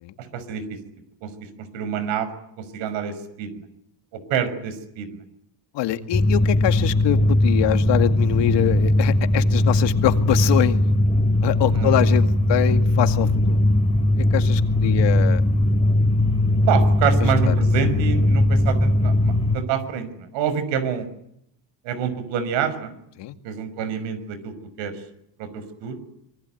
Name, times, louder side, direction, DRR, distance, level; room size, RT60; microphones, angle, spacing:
voice 1, 0.2-0.8 1.2-2.3 2.6-3.7 4.1-5.2 11.7-12.0 16.7-21.1 21.8-23.0 23.4-25.0 25.4-26.0, right 8 dB, 90° right, 13 dB, 6.0 m, -27 dB
voice 2, 5.7-10.8 11.4-13.6 14.2-15.4 17.2-17.5 23.2-23.4, left 13 dB, 70° left, 8 dB, 2.2 m, -24 dB
sound 1, 6.1-19.6, left 1 dB, 15° left, 3.0 m, -19 dB
25.5 x 22.5 x 9.3 m, 0.76 s
cardioid pair, 120°, 44 cm